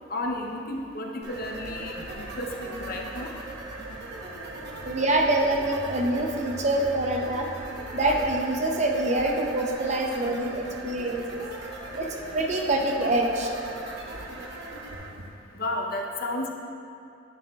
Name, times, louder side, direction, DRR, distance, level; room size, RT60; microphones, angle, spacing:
voice 1, 0.1-3.3 15.5-16.5, left 1 dB, 50° left, 1 dB, 0.7 m, -32 dB
sound 1, 1.2-14.9, right 1 dB, 55° right, 1.0 m, -43 dB
sound 2, 1.3-15.3, right 2 dB, 85° right, 1.1 m, -40 dB
voice 2, 4.8-7.5 7.9-11.4 12.0-13.5, right 2 dB, 35° right, 1 dB, 0.7 m, -25 dB
10.0 x 9.7 x 2.3 m, 2.5 s
head